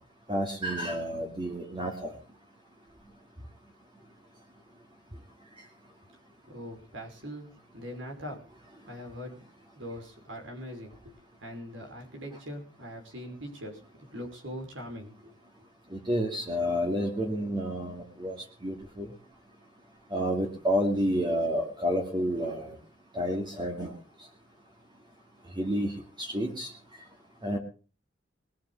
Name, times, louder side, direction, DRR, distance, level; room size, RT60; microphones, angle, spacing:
voice 1, 0.3-2.1 15.9-18.4 18.6-19.1 20.1-22.7 23.1-23.9 25.6-25.9 26.2-26.7 27.4-27.6, equal, 25° right, 1 dB, 2.3 m, -29 dB
voice 2, 6.5-8.4 8.9-9.4 9.8-15.3, equal, 80° right, 3 dB, 5.3 m, -42 dB
21.0 x 7.4 x 7.0 m, 0.38 s
head